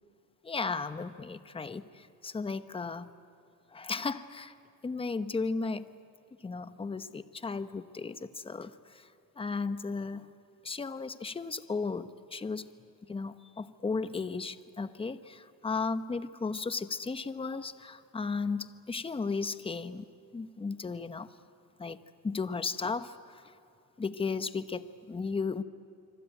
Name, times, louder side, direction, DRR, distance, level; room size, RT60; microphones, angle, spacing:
voice 1, 0.4-3.1 3.7-4.5 4.8-5.9 6.4-9.1 9.4-10.2 10.6-12.7 13.1-20.1 20.3-21.3 21.8-22.0 22.2-23.4 24.0-25.6, left 4 dB, 15° left, 12 dB, 0.9 m, -35 dB
25.5 x 25.0 x 9.2 m, 2.5 s
cardioid pair, 110°, 39 cm